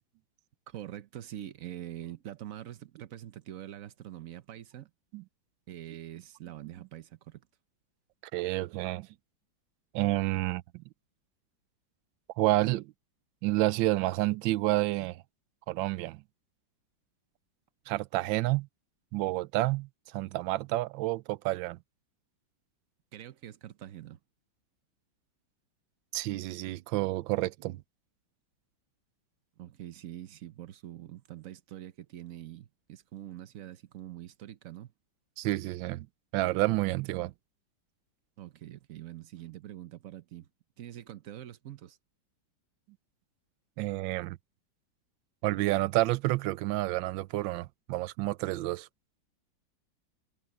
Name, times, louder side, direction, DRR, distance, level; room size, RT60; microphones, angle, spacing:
voice 1, 0.7-4.9 5.7-7.4 23.1-24.2 29.6-34.9 38.4-40.5 40.8-42.0, right 12 dB, 60° right, 0.9 m, -44 dB
voice 2, 8.3-9.1 9.9-10.8 12.4-12.9 13.4-15.2 15.7-16.2 17.9-18.7 19.1-21.8 26.1-27.8 35.4-36.1 36.3-37.3 43.8-44.4 45.4-48.9, right 18 dB, 85° right, 1.3 m, -29 dB
omnidirectional pair, 2.1 m